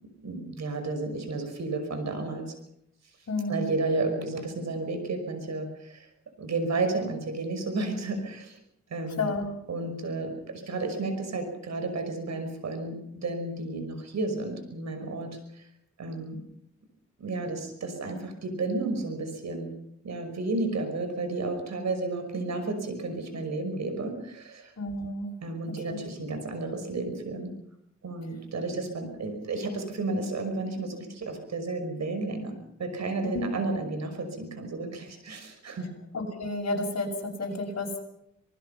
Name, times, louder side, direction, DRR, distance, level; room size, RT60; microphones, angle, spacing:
voice 1, 0.0-2.5 3.5-6.1 6.4-8.6 8.9-9.3 9.7-15.7 16.0-16.4 17.2-19.8 20.0-24.7 25.4-27.5 28.0-35.9, right 3 dB, 70° right, 7 dB, 5.7 m, -32 dB
voice 2, 3.3-3.7 9.2-9.6 24.8-25.3 25.9-26.1 33.3-33.5 36.1-38.0, left 2 dB, 60° left, 0 dB, 6.8 m, -31 dB
27.0 x 19.5 x 5.8 m, 0.78 s
cardioid pair, 80°, 29 cm